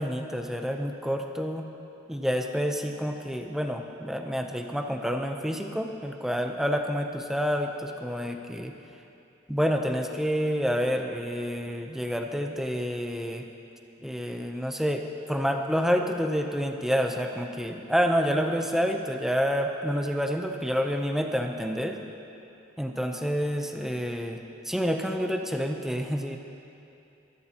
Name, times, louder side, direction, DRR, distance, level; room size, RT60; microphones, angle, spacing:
voice 1, 0.0-1.7 2.1-8.7 9.5-13.5 14.0-22.0 22.8-24.4 24.7-26.4, equal, ahead, 3 dB, 0.7 m, -28 dB
24.0 x 12.5 x 2.9 m, 2.8 s
head